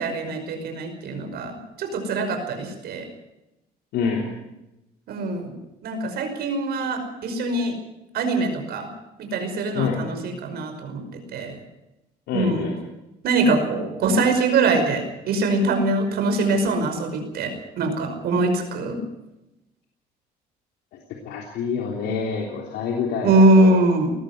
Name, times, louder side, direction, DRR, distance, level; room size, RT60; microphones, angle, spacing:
voice 1, 0.0-3.1 5.1-5.5 5.8-7.8 8.1-8.9 9.2-11.6 12.3-12.7 13.2-19.0 23.2-24.1, right 2 dB, 70° right, 6 dB, 5.5 m, -22 dB
voice 2, 3.9-4.3 9.7-10.0 12.3-12.7 21.2-23.7, left 5 dB, 80° left, 0 dB, 3.4 m, -27 dB
19.5 x 14.5 x 9.6 m, 0.95 s
cardioid pair, 110°, 17 cm